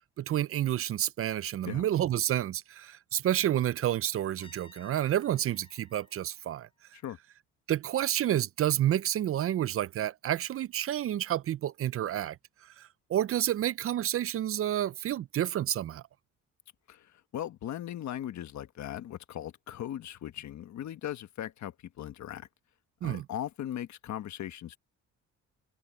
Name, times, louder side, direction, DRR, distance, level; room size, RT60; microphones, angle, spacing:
voice 1, 0.2-6.7 7.7-12.4 12.6-16.0 23.0-23.3, right 12 dB, 50° right, 0.4 m, -29 dB
Trumpet, 4.4-7.3, left 2 dB, 20° left, 7.4 m, -59 dB
voice 2, 16.9-22.5 23.0-24.8, left 11 dB, 65° left, 1.3 m, -38 dB
open air
cardioid pair, 90°, 30 cm